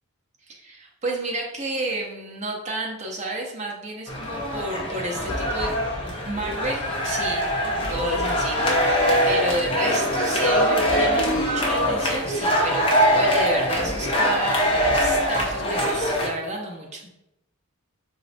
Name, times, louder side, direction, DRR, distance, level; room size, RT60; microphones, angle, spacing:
voice 1, 0.5-7.4 7.9-9.0 9.3-12.9 13.1-14.6 14.9-17.1, right 2 dB, 30° right, -1 dB, 0.5 m, -31 dB
sound 1, 4.1-16.3, equal, 25° left, 0.4 m, -23 dB
3.9 x 2.0 x 2.5 m, 0.88 s
head